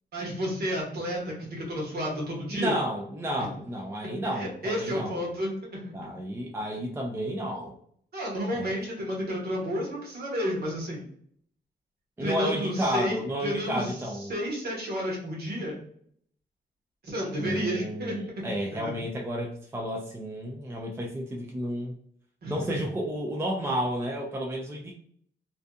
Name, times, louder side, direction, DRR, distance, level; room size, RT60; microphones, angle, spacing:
voice 1, 0.1-2.8 3.4-3.5 4.0-5.9 8.1-11.1 12.2-13.9 14.3-15.8 17.0-18.5 18.7-18.9 22.4-22.8, equal, 55° right, -2 dB, 1.1 m, -31 dB
voice 2, 2.5-5.3 5.9-7.8 8.5-8.8 12.2-14.3 17.4-21.9 22.5-24.9, equal, 15° right, 0 dB, 0.3 m, -31 dB
2.6 x 2.4 x 2.2 m, 0.64 s
wide cardioid pair, 145°, 19 cm